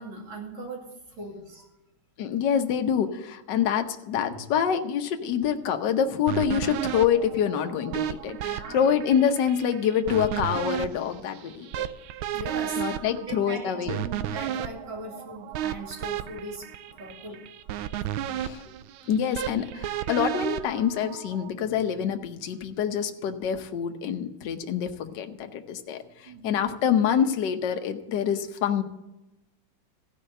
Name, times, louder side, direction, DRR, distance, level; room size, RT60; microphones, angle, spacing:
voice 1, 0.0-1.7 4.3-4.4 8.4-8.9 12.3-12.8 13.2-16.7 17.0-17.4 26.3-26.7, right 2 dB, 70° right, -1 dB, 3.2 m, -39 dB
voice 2, 2.2-11.9 12.8-14.0 18.4-18.6 19.1-28.8, left 8 dB, 65° left, 6 dB, 1.5 m, -26 dB
sound 1, 6.3-21.5, right 11 dB, 85° right, 1.4 m, -33 dB
15.0 x 5.5 x 7.8 m, 0.98 s
omnidirectional pair, 2.3 m